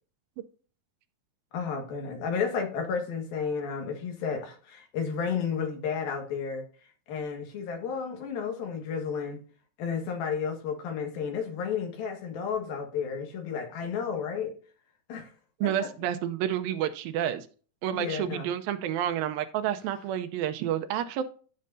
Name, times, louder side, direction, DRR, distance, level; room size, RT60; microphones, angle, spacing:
voice 1, 1.5-6.6 7.1-9.4 9.8-14.5 15.1-15.3 17.9-18.5, left 6 dB, 85° left, 3 dB, 3.5 m, -32 dB
voice 2, 15.6-17.5 17.8-21.2, right 11 dB, 90° right, 9 dB, 2.5 m, -29 dB
14.0 x 6.6 x 2.7 m, 0.40 s
omnidirectional pair, 4.1 m